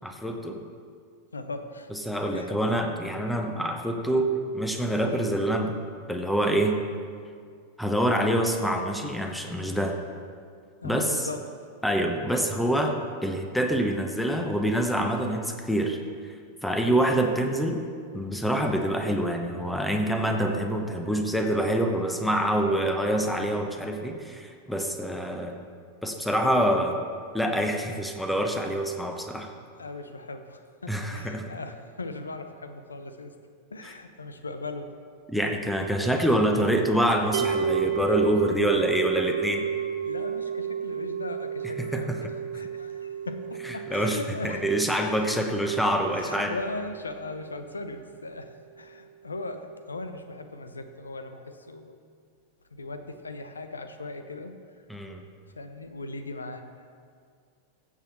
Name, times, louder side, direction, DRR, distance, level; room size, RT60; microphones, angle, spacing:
voice 1, 0.0-0.6 1.9-5.8 6.1-6.8 7.8-10.0 10.8-11.2 11.8-12.9 13.2-16.0 16.6-17.8 18.1-25.6 26.0-27.0 27.3-29.5 30.9-31.4 35.3-39.7 41.9-42.2 43.9-44.2 44.4-46.5 54.9-55.2, right 1 dB, 5° left, 3 dB, 1.0 m, -26 dB
voice 2, 1.3-1.9 2.3-2.6 5.0-5.2 10.8-11.4 16.8-17.1 29.8-33.3 33.7-34.9 40.0-42.3 42.5-44.8 46.1-52.0 52.7-54.6 55.6-56.9, left 2 dB, 75° left, 8 dB, 0.8 m, -38 dB
sound 1, 37.3-48.5, right 7 dB, 60° right, 0.9 m, -32 dB
16.0 x 7.4 x 4.3 m, 2.1 s
figure-of-eight pair, 90°, 0 cm